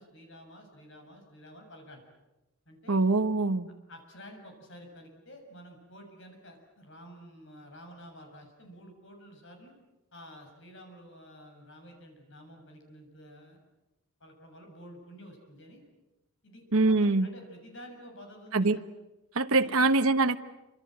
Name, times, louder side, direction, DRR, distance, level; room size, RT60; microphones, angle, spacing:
voice 1, 0.0-2.0 2.7-3.0 3.9-9.7 10.1-13.6 14.2-15.8 16.4-18.8 19.6-19.9, equal, 55° left, 3 dB, 7.2 m, -50 dB
voice 2, 2.9-3.7 16.7-17.3 18.5-18.8 19.3-20.4, right 3 dB, 70° right, 8 dB, 1.2 m, -23 dB
28.0 x 26.0 x 7.8 m, 1.0 s
head